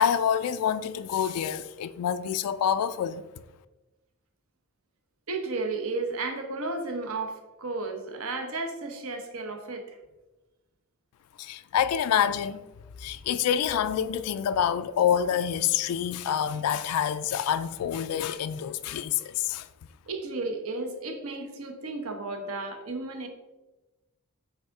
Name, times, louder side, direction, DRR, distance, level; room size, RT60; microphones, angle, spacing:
voice 1, 0.0-3.3 11.4-12.6 13.0-19.7, left 8 dB, 85° left, 0.3 m, -27 dB
voice 2, 5.3-10.0 20.1-23.3, right 3 dB, 70° right, 0.9 m, -33 dB
8.8 x 3.6 x 3.6 m
head